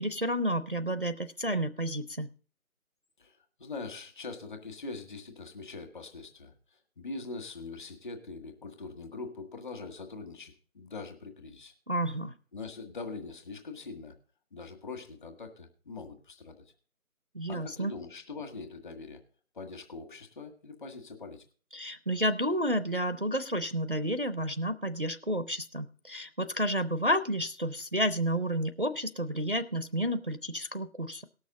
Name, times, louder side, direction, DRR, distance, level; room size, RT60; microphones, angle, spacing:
voice 1, 0.0-2.3 11.9-12.3 17.3-17.9 21.7-31.2, equal, 40° right, 10 dB, 0.4 m, -31 dB
voice 2, 3.2-11.7 12.5-14.1 14.5-16.5 17.5-19.2 19.5-21.4, left 3 dB, 35° left, 4 dB, 1.7 m, -43 dB
18.5 x 6.4 x 3.8 m, 0.41 s
figure-of-eight pair, 160°, 42 cm